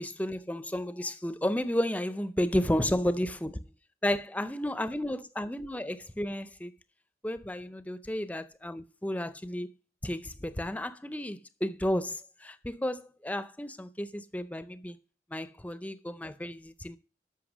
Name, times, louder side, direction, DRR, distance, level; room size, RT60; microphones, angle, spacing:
voice 1, 0.0-3.7 4.0-6.7 7.2-9.7 10.0-15.0 15.3-17.0, left 1 dB, 10° left, 0.4 m, -32 dB
12.5 x 5.8 x 6.1 m
head